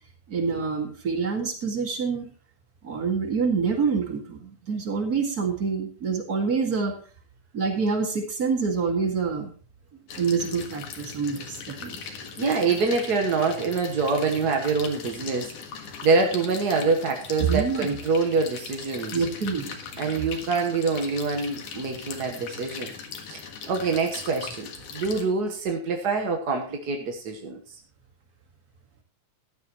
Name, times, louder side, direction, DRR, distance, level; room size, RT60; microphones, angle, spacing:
voice 1, 0.3-2.3 2.8-6.9 7.5-9.5 10.1-12.0 17.4-18.0 19.1-19.8, right 5 dB, 35° right, 3 dB, 2.1 m, -26 dB
sound 1, 10.1-25.2, left 6 dB, 80° left, 3.1 m, -40 dB
voice 2, 12.0-19.2 20.0-22.9 23.3-27.8, right 4 dB, 65° right, 2 dB, 0.9 m, -26 dB
14.5 x 12.0 x 3.0 m, 0.38 s
omnidirectional pair, 3.6 m